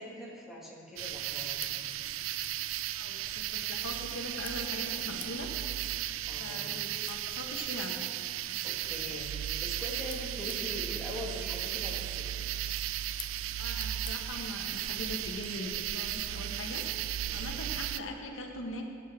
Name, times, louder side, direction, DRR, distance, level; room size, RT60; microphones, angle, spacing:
voice 1, 0.0-1.9 6.3-6.7 8.6-9.3 9.6-12.4 17.3-17.5, left 1 dB, ahead, -4 dB, 1.8 m, -43 dB
sound 1, 1.0-15.6, left 8 dB, 25° left, 0.6 m, -54 dB
sound 2, 1.0-18.0, right 12 dB, 75° right, 0.3 m, -35 dB
voice 2, 2.9-5.5 6.4-8.0 13.6-16.8 17.3-18.9, left 1 dB, 85° left, 2 dB, 1.1 m, -41 dB
17.0 x 8.4 x 3.6 m, 2.4 s
head